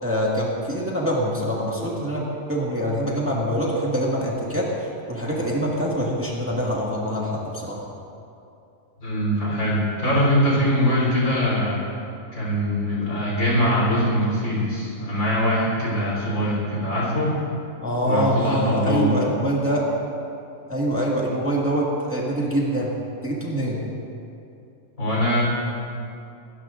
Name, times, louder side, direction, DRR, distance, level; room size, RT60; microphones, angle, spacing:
voice 1, 0.0-2.2 2.5-7.8 17.8-19.8 20.7-22.9 23.2-23.8, equal, 10° right, -5 dB, 1.9 m, -24 dB
voice 2, 9.0-11.8 12.3-17.4 18.0-19.1 25.0-25.4, equal, 70° left, -5 dB, 4.5 m, -22 dB
26.5 x 12.5 x 2.6 m, 2.6 s
omnidirectional pair, 1.5 m